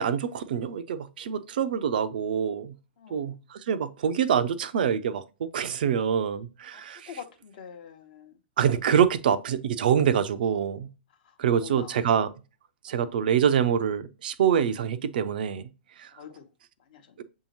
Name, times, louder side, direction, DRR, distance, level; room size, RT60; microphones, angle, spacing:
voice 1, 0.0-2.7 3.1-7.1 8.6-10.9 11.4-12.3 12.8-15.6 16.0-16.1 17.2-17.3, right 8 dB, 50° right, 0.4 m, -25 dB
voice 2, 3.0-3.4 6.7-8.4 11.1-12.0 12.9-13.1 16.1-16.5 16.8-17.2, left 8 dB, 50° left, 0.8 m, -46 dB
6.7 x 2.7 x 2.8 m
figure-of-eight pair, 110°, 6 cm